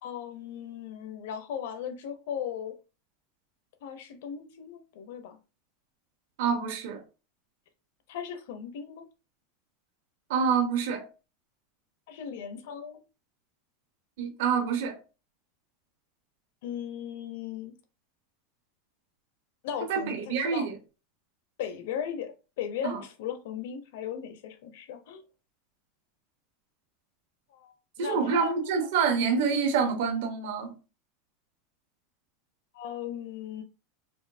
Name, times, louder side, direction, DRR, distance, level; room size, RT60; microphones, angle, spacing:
voice 1, 0.0-2.7 3.8-5.4 8.1-9.0 12.1-13.0 16.6-17.7 19.6-20.7 21.6-22.3 22.6-25.2 27.5-27.7 28.0-28.5 32.7-33.6, left 8 dB, 60° left, 0.7 m, -37 dB
voice 2, 6.4-7.0 10.3-11.1 14.2-15.0 19.8-20.8 22.8-23.0 28.0-30.8, right 6 dB, 60° right, 0.9 m, -27 dB
4.4 x 2.6 x 2.6 m
supercardioid pair, 175°, 0 cm